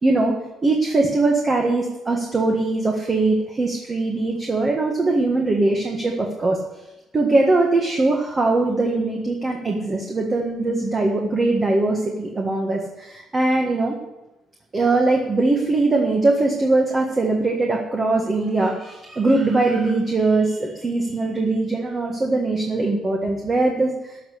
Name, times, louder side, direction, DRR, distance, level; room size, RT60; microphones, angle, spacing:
voice 1, 0.0-0.3 0.6-6.6 7.1-13.9 14.7-23.9, right 2 dB, 25° right, 1 dB, 1.6 m, -21 dB
13.5 x 6.7 x 10.0 m, 0.98 s
cardioid pair, 150°, 0 cm